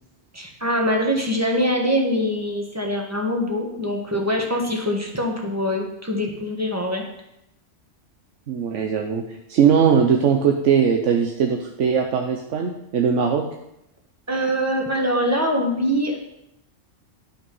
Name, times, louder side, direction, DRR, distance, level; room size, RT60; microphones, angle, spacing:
voice 1, 0.3-7.0 14.3-16.2, equal, 15° right, 1 dB, 1.6 m, -23 dB
voice 2, 8.5-9.2 9.5-13.4, right 7 dB, 80° right, 3 dB, 1.2 m, -20 dB
11.5 x 5.9 x 5.5 m, 0.83 s
omnidirectional pair, 1.3 m